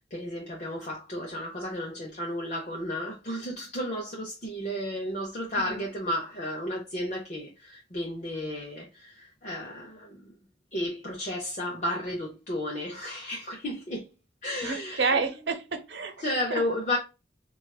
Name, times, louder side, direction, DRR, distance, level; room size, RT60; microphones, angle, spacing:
voice 1, 0.1-10.3 10.7-14.1 14.4-15.1 16.2-17.0, left 1 dB, 40° left, 0.7 m, -33 dB
voice 2, 5.5-5.9 14.6-16.1 16.5-16.6, right 4 dB, 75° right, 0.7 m, -29 dB
4.4 x 2.3 x 2.3 m
head